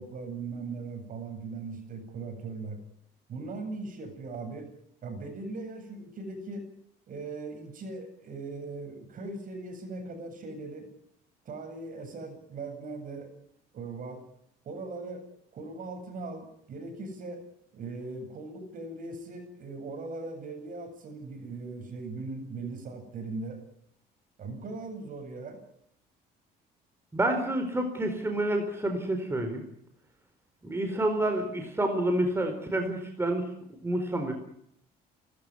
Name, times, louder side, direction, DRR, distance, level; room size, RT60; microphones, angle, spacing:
voice 1, 0.0-2.8 3.3-4.7 5.0-6.7 7.1-10.9 11.4-13.3 13.7-14.2 14.6-15.2 15.5-17.4 17.7-23.6 24.4-25.6, right 3 dB, 55° right, 7 dB, 8.0 m, -39 dB
voice 2, 27.1-29.6 30.6-33.5 33.8-34.3, right 1 dB, 15° right, 5 dB, 4.3 m, -28 dB
29.5 x 14.5 x 9.9 m, 0.73 s
cardioid pair, 110°, 17 cm